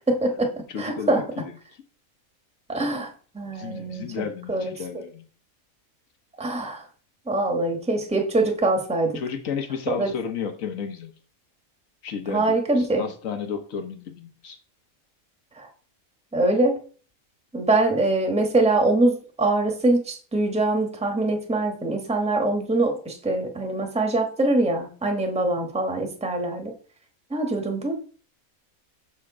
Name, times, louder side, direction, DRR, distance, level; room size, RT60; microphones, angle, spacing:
voice 1, 0.1-0.5 0.8-1.2 2.7-3.1 3.3-4.7 6.4-6.8 7.3-9.2 9.9-10.1 12.3-13.0 15.6-15.7 16.3-16.8 17.5-26.7 27.3-28.0, right 2 dB, 5° right, 3 dB, 1.1 m, -23 dB
voice 2, 0.7-1.8 3.5-5.3 9.1-11.1 12.0-14.6, left 6 dB, 70° left, 7 dB, 1.4 m, -33 dB
6.4 x 4.4 x 4.8 m, 0.41 s
omnidirectional pair, 1.5 m